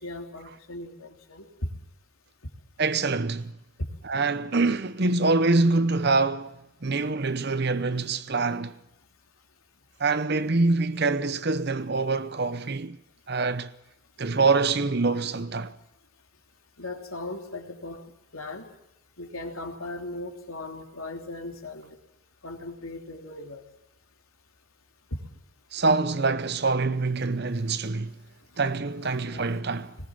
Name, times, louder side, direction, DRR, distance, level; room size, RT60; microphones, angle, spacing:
voice 1, 0.0-1.5 3.8-3.9 16.8-18.0 18.3-18.7 19.2-21.9 22.4-23.6 25.1-25.2 29.0-29.8, left 2 dB, 80° left, 3.1 m, -38 dB
voice 2, 2.8-3.5 4.0-6.6 6.8-8.8 10.0-13.0 13.3-13.7 14.2-15.7 25.7-28.2 28.6-30.0, right 3 dB, 50° right, 0.8 m, -25 dB
20.0 x 18.5 x 8.9 m
head